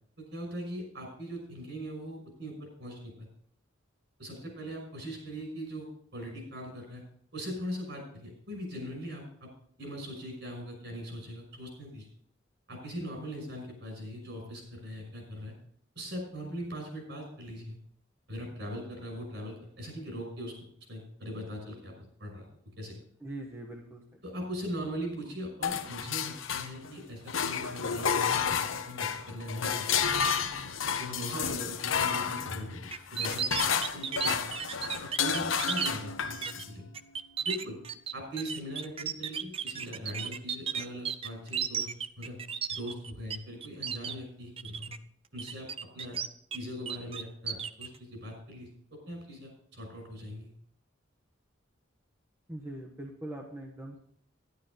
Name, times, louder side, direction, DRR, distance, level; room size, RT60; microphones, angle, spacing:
voice 1, 0.2-3.3 4.2-7.0 7.3-9.5 9.8-12.1 12.7-15.5 16.0-17.8 18.3-20.6 20.9-21.9 22.2-22.5 22.8-23.0 24.2-30.3 31.0-32.8 33.1-34.5 35.0-36.9 37.4-37.8 38.1-42.4 42.7-45.0 45.3-45.7 45.9-46.2 46.5-50.5, equal, 60° right, 2 dB, 5.8 m, -40 dB
voice 2, 23.2-24.0 52.5-54.0, right 1 dB, 10° right, 0 dB, 1.1 m, -41 dB
sound 1, 25.6-27.0 27.3-36.7, left 7 dB, 85° left, 0.9 m, -31 dB
sound 2, 32.9-35.9 36.4-36.6 36.9-43.4 43.6-44.1 44.6-45.0 45.4-46.6 46.9-47.9, right 7 dB, 30° right, 0.4 m, -34 dB
11.5 x 11.5 x 3.9 m, 0.63 s
head